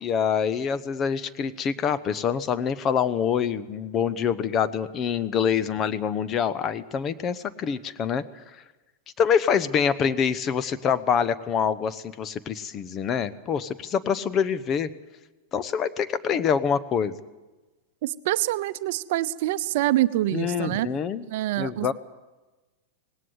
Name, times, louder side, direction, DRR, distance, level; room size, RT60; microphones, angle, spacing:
voice 1, 0.0-8.2 9.2-14.9 15.5-17.2 20.3-21.3 21.6-21.9, left 7 dB, 30° left, 14 dB, 0.9 m, -25 dB
voice 2, 18.0-20.9 21.3-21.9, right 15 dB, 65° right, 14 dB, 0.7 m, -25 dB
19.0 x 17.5 x 8.1 m, 1.2 s
hypercardioid pair, 125°, 0 cm